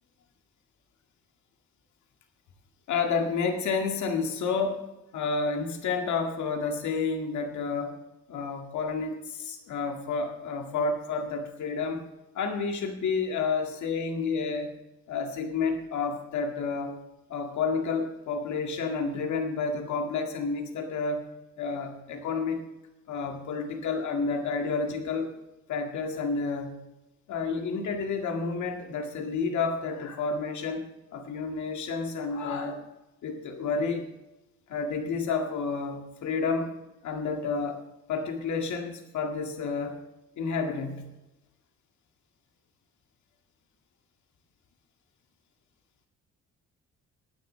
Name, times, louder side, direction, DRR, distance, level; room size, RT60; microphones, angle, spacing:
voice 1, 2.9-4.9 5.1-8.0 8.3-12.0 12.3-14.7 15.1-16.9 17.3-21.3 21.6-22.6 23.1-25.3 25.7-26.8 27.3-30.9 31.1-32.8 33.2-34.1 34.7-36.7 37.0-40.0 40.4-41.1, left 4 dB, 70° left, 3 dB, 2.0 m, -30 dB
21.0 x 9.8 x 3.3 m, 1.0 s
cardioid pair, 90°, 30 cm